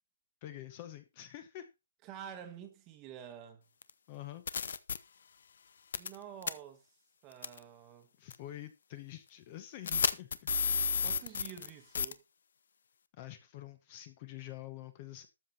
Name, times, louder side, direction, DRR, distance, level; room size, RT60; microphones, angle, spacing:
voice 1, 0.4-1.7 4.1-4.4 8.2-10.5 13.2-15.3, left 13 dB, 20° left, 1.0 m, -47 dB
voice 2, 2.0-3.7 5.9-6.9 7.2-8.1 11.0-12.2, right 9 dB, 15° right, 1.3 m, -49 dB
sound 1, 3.8-3.9 4.5-5.0 5.9-6.2 6.4-6.5 7.4-7.6 8.3-8.4 9.9-11.7 11.9-12.1, left 6 dB, 50° left, 0.9 m, -31 dB
13.0 x 7.7 x 4.3 m
hypercardioid pair, 180°, 0 cm